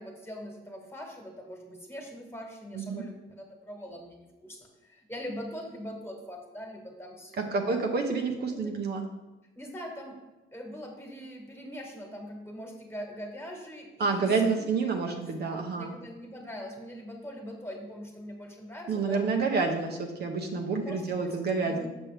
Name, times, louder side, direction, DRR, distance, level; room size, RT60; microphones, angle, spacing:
voice 1, 0.0-7.7 8.5-8.7 9.5-10.2 10.5-15.2 15.5-19.2 20.8-21.4 21.6-21.9, equal, 10° left, 1 dB, 1.6 m, -42 dB
voice 2, 7.4-9.0 14.0-15.9 18.9-21.9, right 4 dB, 55° right, 3 dB, 0.8 m, -28 dB
6.3 x 6.0 x 3.3 m, 1.1 s
cardioid pair, 90°, 20 cm